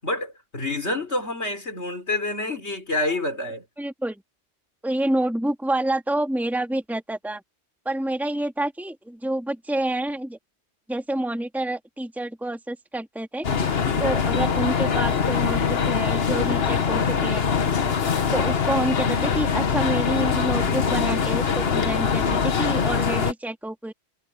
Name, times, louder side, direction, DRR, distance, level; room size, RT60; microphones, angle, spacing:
voice 1, 0.0-3.7, left 2 dB, 80° left, 5.2 m, -28 dB
voice 2, 3.8-4.2 4.8-7.4 7.9-10.4 10.9-13.5 14.0-17.4 18.3-23.9, right 1 dB, ahead, 2.2 m, -28 dB
sound 1, 13.4-23.3, left 6 dB, 65° left, 1.4 m, -23 dB
omnidirectional pair, 1.1 m